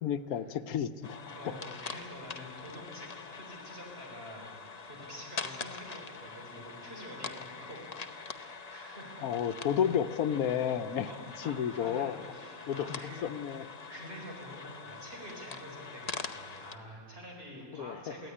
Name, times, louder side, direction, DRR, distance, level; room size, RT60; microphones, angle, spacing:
voice 1, 0.0-1.6 9.2-11.1 11.4-12.2 12.7-13.7 17.7-18.1, left 8 dB, 85° left, 12 dB, 1.2 m, -32 dB
sound 1, 1.0-16.8, left 5 dB, 35° left, 0.8 m, -44 dB
voice 2, 1.3-7.8 8.3-9.3 9.6-9.7 11.0-13.3 13.9-18.3, equal, 40° right, -1 dB, 5.0 m, -47 dB
22.5 x 15.5 x 9.8 m, 2.2 s
omnidirectional pair, 1.5 m